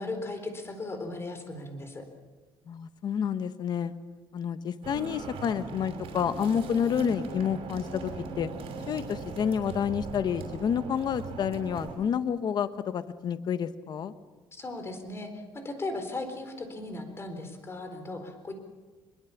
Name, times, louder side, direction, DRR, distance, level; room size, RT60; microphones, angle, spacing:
voice 1, 0.0-2.0 14.5-18.5, left 2 dB, 25° left, 7 dB, 4.1 m, -37 dB
voice 2, 2.7-3.9 4.3-8.1 8.4-8.5 8.9-14.1, left 8 dB, 45° left, 12 dB, 1.1 m, -29 dB
sound 1, 4.8-12.0, right 4 dB, 70° right, 5.8 m, -39 dB
23.0 x 22.5 x 7.2 m, 1.4 s
cardioid pair, 130°, 10 cm